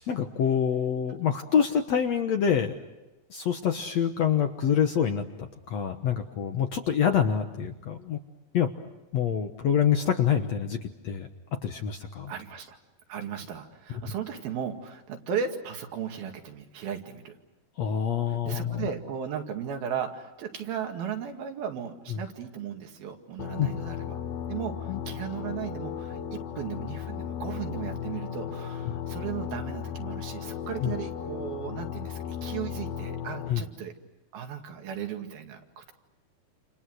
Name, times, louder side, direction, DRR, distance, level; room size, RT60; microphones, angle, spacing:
voice 1, 0.0-2.8 3.3-8.2 8.5-8.7 9.1-11.3 11.6-12.3 17.8-18.9 22.1-22.2 23.6-23.7 24.9-25.0 30.8-30.9 33.5-33.6, left 8 dB, 60° left, 6 dB, 1.9 m, -26 dB
voice 2, 12.3-12.8 13.1-17.3 18.3-24.2 24.5-33.9 34.3-35.9, right 8 dB, 75° right, 4 dB, 4.0 m, -36 dB
sound 1, 23.4-33.5, left 8 dB, 85° left, 3.2 m, -35 dB
29.0 x 28.5 x 6.4 m, 1.0 s
omnidirectional pair, 4.3 m